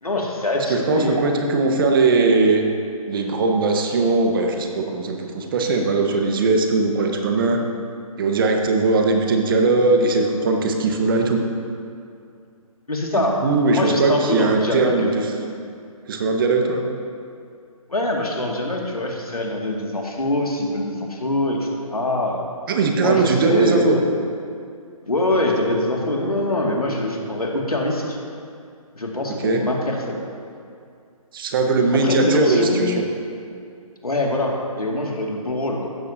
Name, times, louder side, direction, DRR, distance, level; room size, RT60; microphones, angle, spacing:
voice 1, 0.0-1.2 12.9-13.3 13.8-15.1 17.9-22.4 23.0-24.0 25.1-28.2 28.9-30.2 32.0-32.9 34.0-35.9, left 1 dB, 80° left, -1 dB, 2.2 m, -24 dB
voice 2, 0.7-2.6 3.1-7.6 8.2-11.4 13.1-15.3 16.1-16.9 22.7-24.0 29.4-29.6 31.3-32.9, right 3 dB, 35° right, 3 dB, 1.3 m, -19 dB
15.5 x 12.5 x 2.8 m, 2.3 s
figure-of-eight pair, 140°, 19 cm